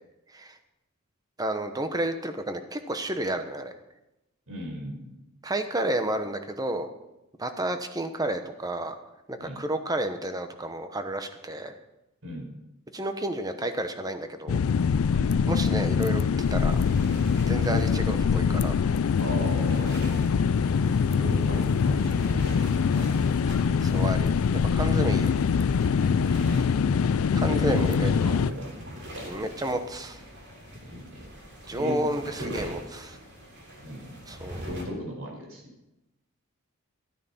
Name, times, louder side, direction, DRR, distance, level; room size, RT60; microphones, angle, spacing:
voice 1, 1.4-3.7 5.4-6.9 7.4-8.9 9.3-11.7 12.9-14.6 15.5-16.8 17.5-18.8 23.8-25.3 27.3-28.1 29.3-30.2 31.7-33.0 34.3-34.6, right 1 dB, 15° right, 8 dB, 1.0 m, -31 dB
voice 2, 4.5-5.2 9.4-9.6 12.2-12.5 15.1-15.5 19.2-20.0 21.1-23.1 26.3-26.9 27.6-28.7 29.1-29.4 30.8-31.2 31.7-32.8 33.8-34.2 34.6-35.7, equal, 75° right, 0 dB, 4.8 m, -37 dB
sound 1, 14.5-28.5, left 6 dB, 75° left, 0.4 m, -24 dB
sound 2, 16.4-34.8, equal, 55° right, 3.3 m, -42 dB
13.5 x 9.4 x 7.0 m, 0.93 s
head